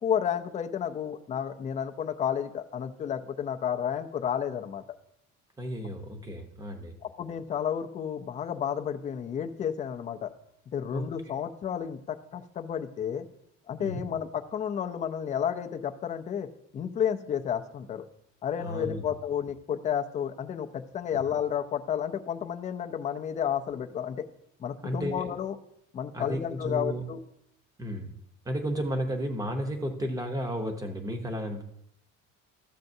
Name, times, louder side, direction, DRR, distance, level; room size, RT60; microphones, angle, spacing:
voice 1, 0.0-4.8 7.0-10.3 10.7-13.3 13.7-18.0 18.4-24.3 24.6-25.6 25.9-27.2, left 8 dB, 25° left, 6 dB, 0.4 m, -31 dB
voice 2, 5.6-6.9 10.9-11.4 13.8-14.0 18.6-19.1 24.8-25.3 26.1-27.0 27.8-28.1 28.4-31.6, equal, 10° right, 4 dB, 0.7 m, -33 dB
13.0 x 7.6 x 2.6 m, 0.77 s
cardioid pair, 175°, 31 cm